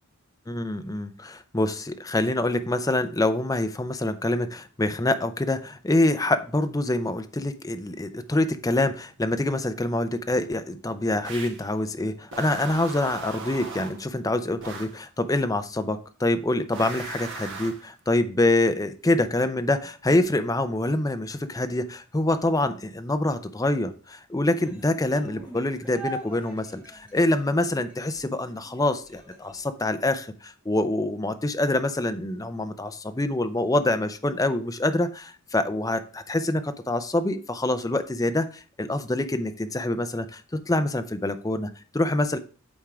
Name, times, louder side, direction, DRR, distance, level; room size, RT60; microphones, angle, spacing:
voice 1, 0.5-42.4, left 2 dB, 15° left, 8 dB, 0.5 m, -26 dB
sound 1, 11.2-11.7 12.3-14.1 14.6-15.0 16.7-17.9, right 4 dB, 55° right, 1.3 m, -38 dB
sound 2, 24.6-29.7, right 2 dB, 5° right, 1.6 m, -43 dB
8.6 x 3.7 x 4.8 m, 0.38 s
head